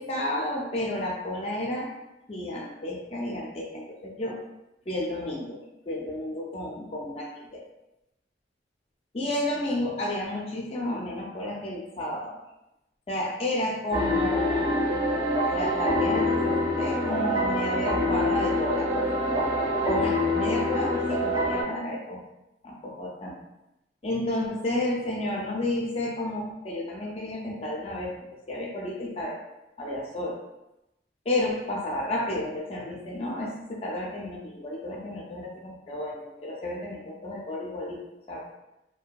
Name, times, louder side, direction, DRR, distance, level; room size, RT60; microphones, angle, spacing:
voice 1, 0.0-1.9 2.3-4.4 4.9-5.6 5.9-7.6 9.1-12.4 13.1-14.9 15.5-19.1 19.9-22.2 22.6-23.4 24.0-28.1 28.5-29.4 29.8-30.4 31.3-38.0 38.3-38.5, left 1 dB, 35° left, -2 dB, 0.4 m, -31 dB
sound 1, 13.9-21.6, left 1 dB, 65° right, 1.4 m, -25 dB
2.6 x 2.6 x 2.2 m, 0.91 s
head